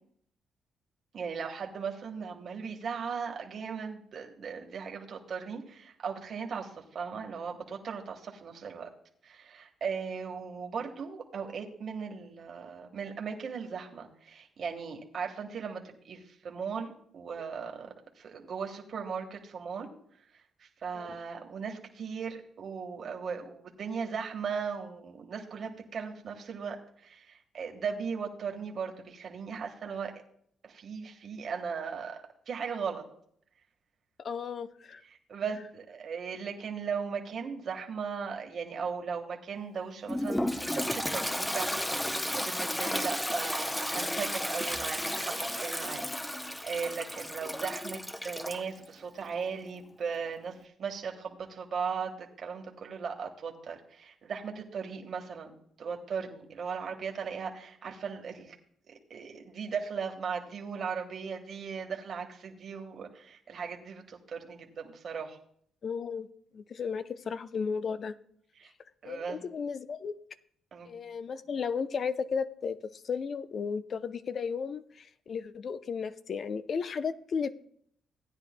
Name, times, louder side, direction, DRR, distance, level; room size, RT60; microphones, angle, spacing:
voice 1, 1.1-8.9 9.2-17.9 18.2-19.9 20.6-26.8 27.0-30.2 30.6-33.0 35.3-58.5 58.9-65.4 68.6-68.7 69.0-69.4 70.7-70.9, right 6 dB, 55° right, 2 dB, 1.4 m, -38 dB
voice 2, 34.2-35.0 65.8-66.3 66.5-68.2 69.0-70.2 70.9-77.5, left 6 dB, 50° left, 12 dB, 0.6 m, -34 dB
Toilet flush, 40.1-48.7, left 1 dB, 5° left, 0.6 m, -33 dB
16.0 x 9.7 x 2.2 m, 0.66 s
cardioid pair, 90°, 0 cm